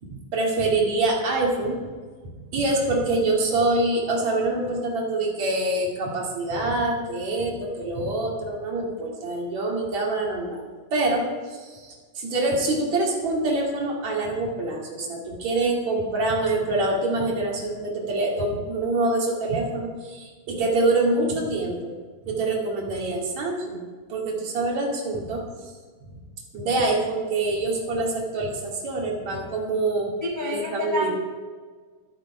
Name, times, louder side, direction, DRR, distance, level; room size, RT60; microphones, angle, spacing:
voice 1, 0.0-1.9 2.5-21.9 22.2-23.8 24.1-25.5 26.1-26.2 26.5-30.1 30.5-31.1, right 2 dB, 55° right, -1 dB, 3.4 m, -25 dB
voice 2, 30.2-31.2, left 1 dB, 75° left, 0 dB, 0.4 m, -28 dB
12.5 x 12.0 x 4.9 m, 1.5 s
omnidirectional pair, 4.1 m